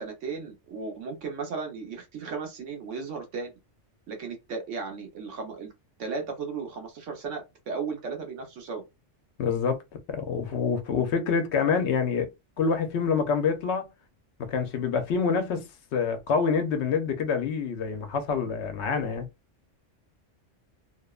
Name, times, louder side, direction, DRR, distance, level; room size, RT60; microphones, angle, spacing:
voice 1, 0.0-3.5 4.1-5.7 6.0-8.8, right 5 dB, 80° right, 1.2 m, -35 dB
voice 2, 9.4-12.3 12.6-13.9 14.4-19.3, left 5 dB, 70° left, 0.8 m, -27 dB
2.7 x 2.0 x 2.3 m
omnidirectional pair, 1.2 m